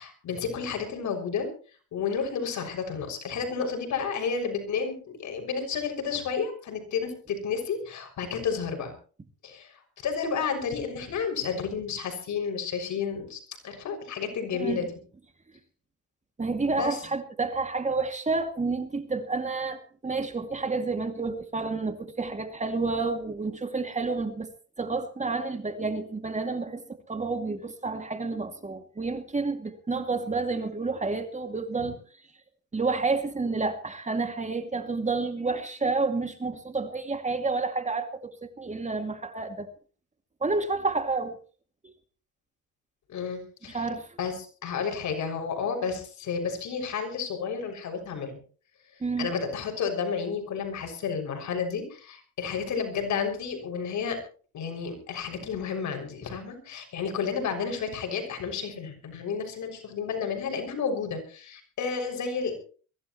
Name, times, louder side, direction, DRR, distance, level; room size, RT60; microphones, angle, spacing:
voice 1, 0.0-1.5 1.9-8.9 9.4-14.9 16.6-17.0 31.8-31.9 43.1-43.9 44.2-48.4 48.9-54.2 54.5-62.6, left 6 dB, 70° left, 6.4 m, -31 dB
voice 2, 14.5-14.9 16.4-24.5 24.8-26.8 27.1-32.0 32.7-39.7 40.4-41.4 41.8-41.9 43.7-44.1 49.0-49.3, right 3 dB, 25° right, 2.4 m, -30 dB
23.0 x 16.5 x 3.1 m
cardioid pair, 90°, 30 cm